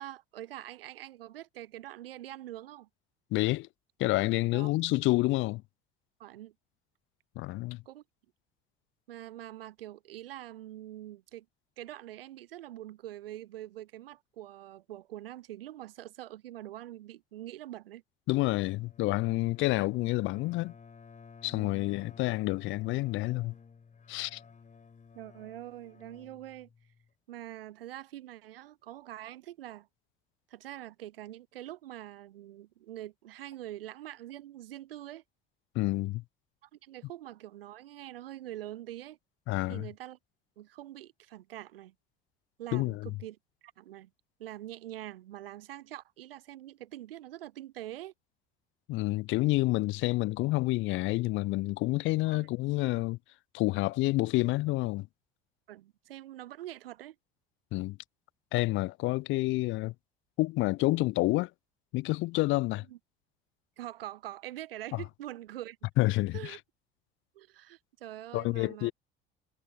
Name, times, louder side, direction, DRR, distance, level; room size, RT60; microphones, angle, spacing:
voice 1, 0.0-2.9 4.5-4.7 6.2-6.5 7.9-8.0 9.1-11.5 11.8-18.0 21.5-21.9 25.1-26.7 27.3-29.9 30.5-35.2 36.6-39.2 39.7-40.2 40.6-41.9 42.6-43.4 43.8-44.1 44.4-48.1 52.3-52.5 55.7-57.2 62.9-63.0 63.8-65.8 66.3-66.6 67.3-68.9, right 14 dB, 75° right, 0.7 m, -44 dB
voice 2, 3.3-3.7 4.0-5.6 7.4-7.8 18.3-20.7 21.4-23.5 24.1-24.4 35.8-36.2 39.5-39.9 42.7-43.1 48.9-53.2 53.5-55.1 57.7-58.0 58.5-59.9 60.4-61.5 61.9-62.8 64.9-65.0 66.0-66.6 68.3-68.9, left 20 dB, 45° left, 0.5 m, -28 dB
Bowed string instrument, 18.6-27.1, left 5 dB, 25° left, 4.1 m, -54 dB
figure-of-eight pair, 60°, 29 cm